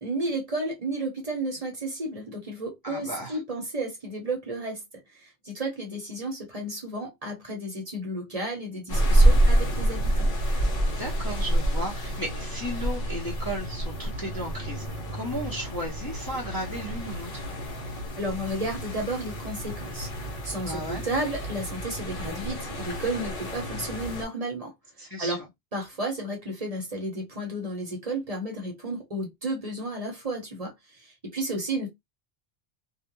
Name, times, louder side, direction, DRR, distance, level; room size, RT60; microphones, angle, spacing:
voice 1, 0.0-4.8 5.1-10.3 18.2-20.1 20.4-24.7 25.0-25.4 25.7-31.9, right 1 dB, 40° right, 0.8 m, -32 dB
voice 2, 2.8-3.4 10.9-14.8 15.1-17.4 20.6-21.0 25.0-25.4, equal, 25° left, 0.6 m, -35 dB
sound 1, 8.9-24.2, right 1 dB, 60° left, 0.9 m, -27 dB
2.4 x 2.1 x 2.9 m
omnidirectional pair, 1.1 m